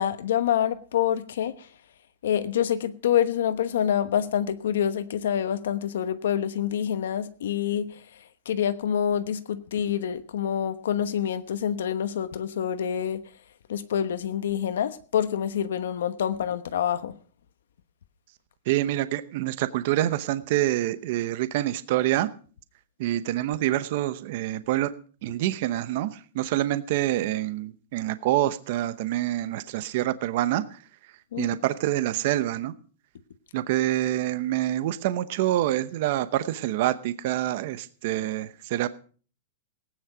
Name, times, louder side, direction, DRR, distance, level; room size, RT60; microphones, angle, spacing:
voice 1, 0.0-1.7 2.2-13.4 13.7-17.2 31.3-31.5, left 9 dB, 75° left, 1.1 m, -27 dB
voice 2, 18.7-22.3 23.0-24.9 25.2-30.8 31.4-32.7 33.5-38.9, right 14 dB, 40° right, 0.8 m, -26 dB
18.0 x 9.5 x 5.0 m
supercardioid pair, 180°, 0 cm